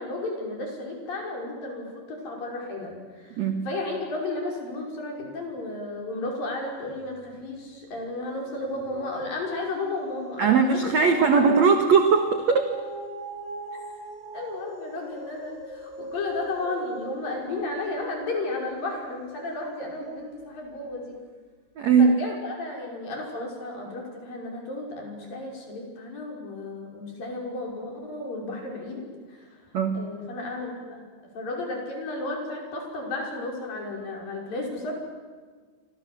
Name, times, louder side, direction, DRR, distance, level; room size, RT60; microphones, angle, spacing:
voice 1, 0.0-11.5 14.3-21.2 22.0-29.5 29.9-31.0 31.3-34.9, left 2 dB, 50° left, 0 dB, 7.2 m, -33 dB
sound 1, 6.9-7.5 7.8-20.3 20.9-21.0, right 1 dB, 35° right, 8.3 m, -41 dB
voice 2, 10.4-12.7 21.8-22.1 29.7-30.1, right 5 dB, 60° right, 6 dB, 1.9 m, -20 dB
29.0 x 25.5 x 7.7 m, 1.5 s
omnidirectional pair, 5.3 m